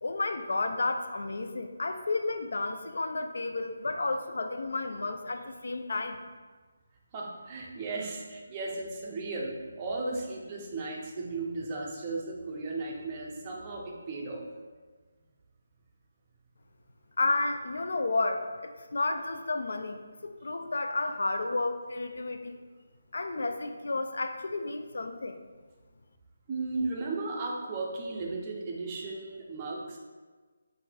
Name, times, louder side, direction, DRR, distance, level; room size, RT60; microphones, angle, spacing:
voice 1, 0.0-6.2 17.2-22.6 23.1-25.4, left 2 dB, 65° left, 7 dB, 0.3 m, -32 dB
voice 2, 7.1-14.4 26.5-30.0, right 3 dB, 15° right, -2 dB, 0.5 m, -35 dB
5.7 x 2.5 x 3.3 m, 1.4 s
hypercardioid pair, 175°, 0 cm